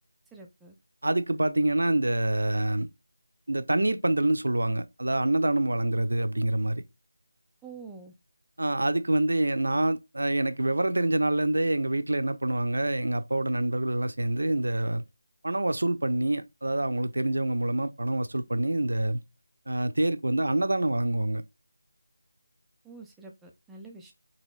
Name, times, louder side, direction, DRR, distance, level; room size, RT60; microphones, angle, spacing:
voice 1, 0.3-0.7 7.6-8.1 22.8-24.1, right 4 dB, 5° right, 0.5 m, -46 dB
voice 2, 1.0-2.9 3.5-6.8 8.6-15.0 15.4-19.2 19.7-21.4, right 1 dB, 75° right, 0.6 m, -26 dB
4.0 x 3.0 x 3.1 m
figure-of-eight pair, 165°, 0 cm